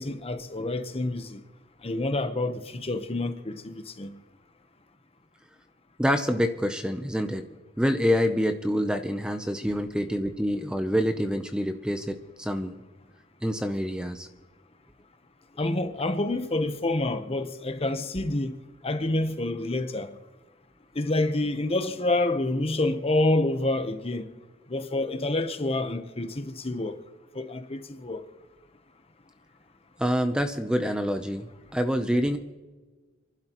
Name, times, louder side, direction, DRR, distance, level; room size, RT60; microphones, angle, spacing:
voice 1, 0.0-1.4 1.8-4.2 15.6-18.5 18.8-20.2 20.9-24.3 24.7-27.0 27.3-28.2, left 2 dB, 30° left, 1.0 m, -28 dB
voice 2, 6.0-7.5 7.8-12.8 13.4-14.3 30.0-32.4, equal, 5° right, 0.6 m, -26 dB
29.5 x 12.0 x 3.0 m
head